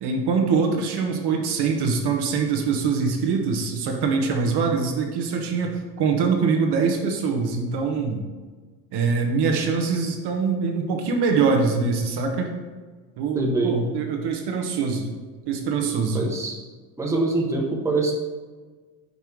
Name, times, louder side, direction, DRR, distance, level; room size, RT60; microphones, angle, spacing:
voice 1, 0.0-8.3 8.9-12.5 13.2-15.1 15.5-16.2, right 5 dB, 50° right, 2 dB, 1.1 m, -23 dB
voice 2, 13.3-13.8 16.1-16.6 17.0-18.1, right 2 dB, 5° right, -2 dB, 1.1 m, -24 dB
5.5 x 4.6 x 4.6 m, 1.4 s
supercardioid pair, 95°, 50 cm